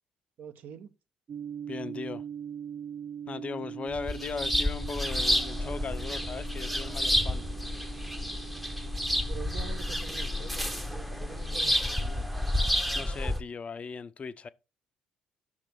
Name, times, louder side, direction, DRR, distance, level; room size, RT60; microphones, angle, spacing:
voice 1, 0.4-0.9 9.2-12.3, right 8 dB, 60° right, 0.7 m, -45 dB
sound 1, 1.3-12.6, right 8 dB, 40° right, 0.3 m, -43 dB
voice 2, 1.7-2.2 3.3-7.4 12.9-14.5, left 5 dB, 35° left, 0.5 m, -38 dB
sound 2, 3.9-13.4, left 1 dB, ahead, 0.7 m, -30 dB
5.9 x 3.1 x 5.7 m
hypercardioid pair, 50°, 3 cm